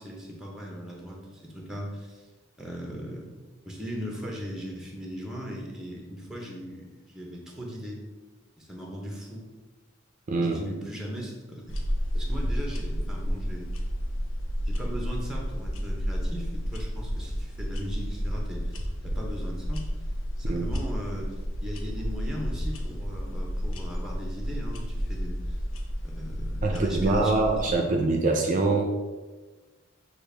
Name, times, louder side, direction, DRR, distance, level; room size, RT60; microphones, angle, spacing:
voice 1, 0.0-2.2 2.6-3.4 3.6-8.0 8.6-9.4 10.4-11.6 12.1-13.7 14.7-18.7 19.0-19.9 20.4-25.5 26.0-27.8, equal, 5° right, -1 dB, 0.8 m, -38 dB
sound 1, 11.7-27.7, equal, 85° left, 0.6 m, -31 dB
voice 2, 26.6-28.8, right 3 dB, 40° right, 2 dB, 0.4 m, -24 dB
6.5 x 2.4 x 3.3 m, 1.3 s
head